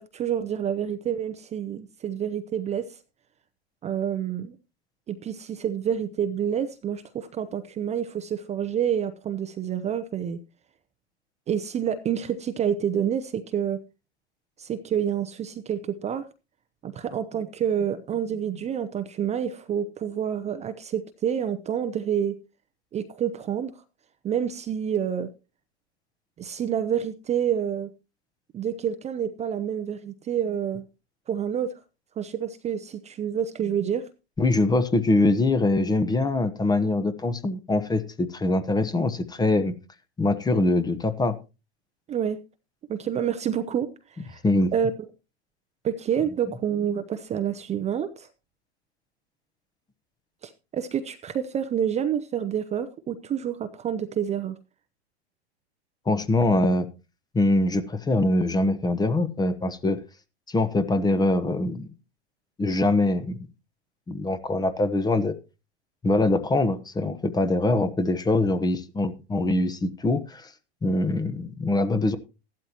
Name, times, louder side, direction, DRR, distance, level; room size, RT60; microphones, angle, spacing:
voice 1, 0.0-3.0 3.8-4.6 5.1-10.4 11.5-13.8 14.6-16.3 16.8-22.3 22.9-23.7 24.2-25.3 26.4-27.9 28.5-30.8 31.3-31.8 32.2-34.1 42.1-42.4 42.9-43.9 44.2-44.4 44.7-44.9 45.8-48.3 50.4-54.6, right 8 dB, 20° right, 10 dB, 0.7 m, -28 dB
voice 2, 34.4-39.8 40.2-41.4 44.4-44.7 56.1-56.9 57.3-60.0 60.5-61.9 62.6-63.4 64.1-65.3 66.0-70.5 70.8-72.2, left 2 dB, 10° left, 11 dB, 0.9 m, -23 dB
14.5 x 12.0 x 2.9 m, 0.29 s
hypercardioid pair, 110°, 33 cm